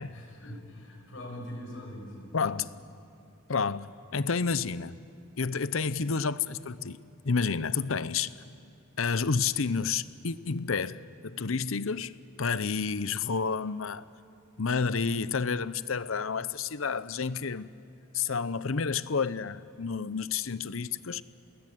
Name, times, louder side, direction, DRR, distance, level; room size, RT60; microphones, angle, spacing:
voice 1, 0.1-2.6, left 1 dB, 70° left, 7.8 m, -43 dB
voice 2, 2.3-2.7 3.5-5.0 5.4-7.0 7.2-8.3 9.0-14.0 14.6-17.7 18.1-21.2, left 5 dB, 85° left, 0.8 m, -30 dB
27.5 x 20.5 x 9.5 m
head